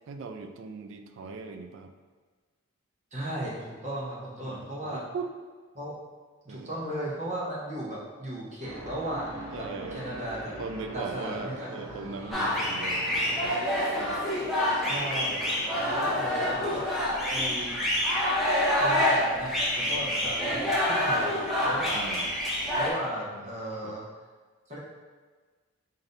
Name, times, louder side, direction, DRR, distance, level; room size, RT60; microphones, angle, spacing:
voice 1, 0.1-1.9 4.5-5.3 6.5-6.8 9.5-10.1 10.6-14.5 15.5-15.7 21.9-22.3 23.8-24.0, right 4 dB, 65° right, 7 dB, 0.3 m, -40 dB
voice 2, 3.1-5.0 5.7-5.9 6.4-10.5 10.9-11.7 14.7-15.4 15.8-16.9 17.3-17.8 18.7-21.3 21.6-22.2 22.7-24.0 24.7-24.8, right 1 dB, 35° right, -5 dB, 0.8 m, -36 dB
sound 1, 8.6-16.8, right 1 dB, 85° right, 1.1 m, -41 dB
sound 2, 12.3-22.9, left 1 dB, ahead, 0.6 m, -27 dB
3.9 x 2.6 x 3.2 m, 1.4 s
head